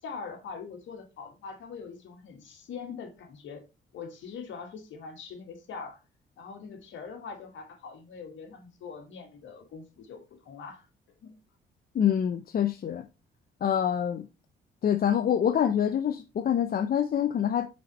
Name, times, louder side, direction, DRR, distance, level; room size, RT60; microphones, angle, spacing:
voice 1, 0.0-3.6 3.9-6.0 6.4-10.9 11.2-11.4, left 5 dB, 75° left, 1.8 m, -42 dB
voice 2, 11.9-13.0 13.6-14.2 14.8-17.7, left 9 dB, 50° left, 0.6 m, -26 dB
6.3 x 4.3 x 4.1 m
cardioid pair, 90°, 20 cm